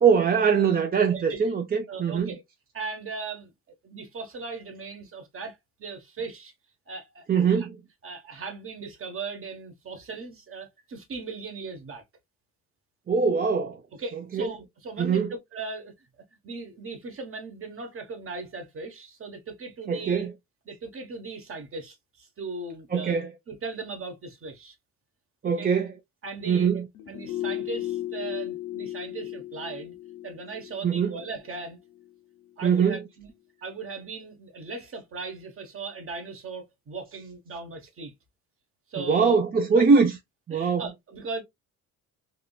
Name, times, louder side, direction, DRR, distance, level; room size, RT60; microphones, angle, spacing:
voice 1, 0.0-2.3 7.3-7.8 13.1-13.8 14.3-14.5 15.0-15.3 19.9-20.3 22.9-23.3 25.4-25.9 26.5-26.9 30.8-31.2 32.6-33.0 39.0-40.2 40.5-40.9, right 6 dB, 30° right, 0.5 m, -22 dB
voice 2, 1.1-1.5 1.9-2.4 2.7-3.5 3.8-6.5 6.9-7.7 8.0-12.0 14.0-16.1 16.4-20.3 20.7-23.2 23.5-24.8 25.4-25.7 26.2-26.8 27.1-30.0 30.2-31.8 32.6-33.3 33.6-38.1 38.9-39.4 39.8-39.9 40.5-41.4, right 4 dB, 45° right, 1.1 m, -38 dB
sound 1, 26.9-32.1 32.4-32.5, left 14 dB, 85° left, 1.0 m, -36 dB
3.6 x 2.5 x 2.2 m
cardioid pair, 90°, 30 cm